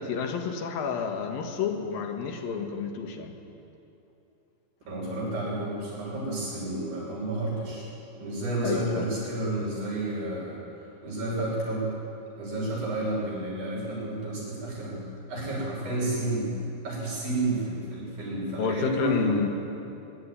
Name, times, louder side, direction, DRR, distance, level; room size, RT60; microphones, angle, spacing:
voice 1, 0.0-3.4 8.6-9.1 18.6-19.5, left 6 dB, 80° left, 4 dB, 3.3 m, -30 dB
voice 2, 4.9-7.8 8.2-10.6 11.0-12.0 12.4-15.0 15.3-16.5 16.8-19.3, right 2 dB, 85° right, -5 dB, 7.8 m, -31 dB
22.5 x 12.0 x 9.8 m, 2.8 s
omnidirectional pair, 4.1 m